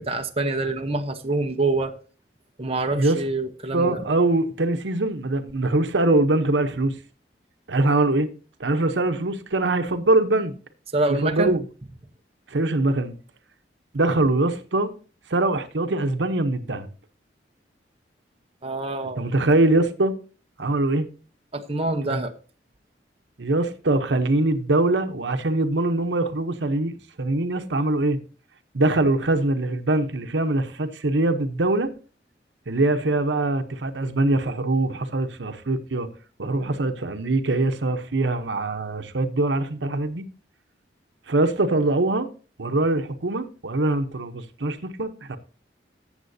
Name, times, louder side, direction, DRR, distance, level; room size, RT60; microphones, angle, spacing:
voice 1, 0.0-1.9 2.6-4.0 10.9-11.6 18.6-19.2 21.5-22.3, right 2 dB, 35° right, 0.9 m, -26 dB
voice 2, 3.7-7.0 7.7-8.3 8.6-10.5 11.1-11.6 12.5-13.1 13.9-14.9 15.3-16.9 19.2-20.2 20.6-21.1 22.1-22.3 23.4-28.2 28.7-31.9 32.7-36.1 36.4-40.2 41.3-42.3 42.6-45.4, right 2 dB, 85° right, 0.9 m, -23 dB
14.5 x 7.4 x 2.7 m
head